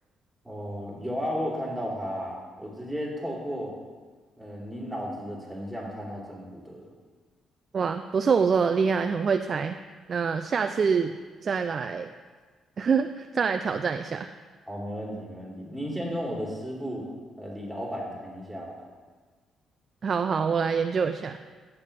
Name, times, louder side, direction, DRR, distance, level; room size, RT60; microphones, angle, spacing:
voice 1, 0.4-3.7 4.4-6.9 14.7-17.0 17.4-18.8, equal, ahead, -5 dB, 3.1 m, -34 dB
voice 2, 7.7-9.8 10.1-11.1 11.4-12.1 12.8-14.3 20.0-21.4, right 5 dB, 45° right, 8 dB, 0.4 m, -25 dB
10.0 x 8.3 x 3.4 m, 1.5 s
cardioid pair, 90°, 0 cm